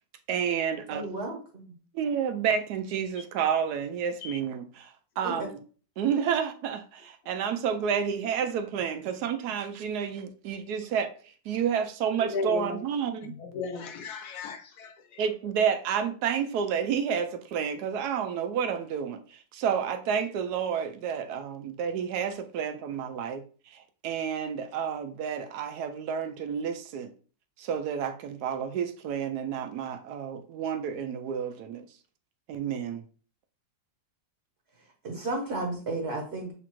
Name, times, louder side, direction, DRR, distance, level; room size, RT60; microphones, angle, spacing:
voice 1, 0.3-1.0 1.9-5.6 6.0-11.1 11.5-13.3 15.2-23.4 23.7-27.1 27.6-31.8 32.5-33.0, right 7 dB, 75° right, 1.0 m, -30 dB
voice 2, 0.9-1.8 5.2-5.5 35.0-36.5, right 2 dB, 45° right, 0.9 m, -33 dB
voice 3, 12.2-12.8 13.5-14.9, left 4 dB, 70° left, 1.0 m, -34 dB
7.0 x 2.5 x 3.0 m
omnidirectional pair, 2.0 m